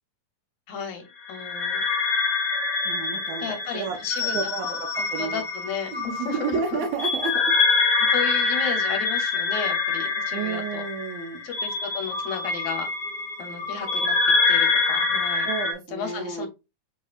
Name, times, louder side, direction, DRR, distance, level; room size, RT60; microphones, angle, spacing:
voice 1, 0.7-1.8 3.4-4.4 4.6-4.8 5.2-6.8 8.1-10.8 11.4-12.9 13.4-14.2 14.5-15.5 15.9-16.5, left 6 dB, 75° left, 2.0 m, -34 dB
sound 1, 1.3-15.7, left 4 dB, 45° left, 1.5 m, -25 dB
voice 2, 2.8-5.4 5.9-7.5 10.3-11.4 15.4-16.5, right 5 dB, 80° right, 1.7 m, -31 dB
6.3 x 2.7 x 2.4 m
omnidirectional pair, 3.5 m